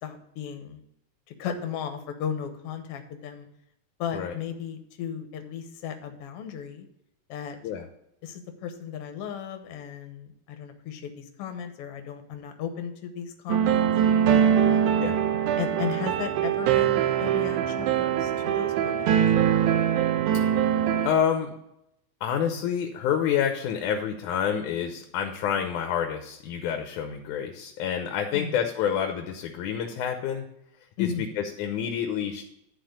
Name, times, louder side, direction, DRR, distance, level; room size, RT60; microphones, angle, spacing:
voice 1, 0.0-0.8 1.4-3.5 4.0-6.9 7.3-7.6 8.2-13.8 14.7-15.0 15.6-19.1 28.3-28.6 31.0-31.3, left 8 dB, 65° left, 6 dB, 1.8 m, -35 dB
sound 1, 13.5-21.1, right 9 dB, 85° right, 2.3 m, -23 dB
voice 2, 21.0-21.5 22.2-30.5 31.0-32.4, left 8 dB, 85° left, 4 dB, 2.3 m, -28 dB
10.5 x 4.4 x 6.4 m, 0.81 s
omnidirectional pair, 3.4 m